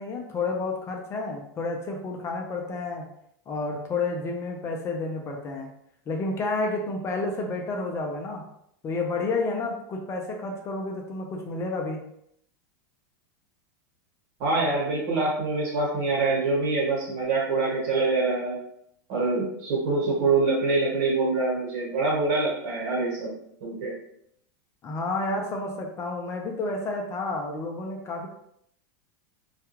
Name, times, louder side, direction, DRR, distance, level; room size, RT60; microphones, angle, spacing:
voice 1, 0.0-3.1 3.5-5.7 6.1-8.4 8.8-12.0 24.8-28.3, left 3 dB, 25° left, 1 dB, 0.4 m, -30 dB
voice 2, 14.4-18.6 19.1-23.3 23.6-23.9, right 3 dB, 60° right, -3 dB, 1.2 m, -25 dB
2.3 x 2.2 x 3.0 m, 0.73 s
supercardioid pair, 130°, 11 cm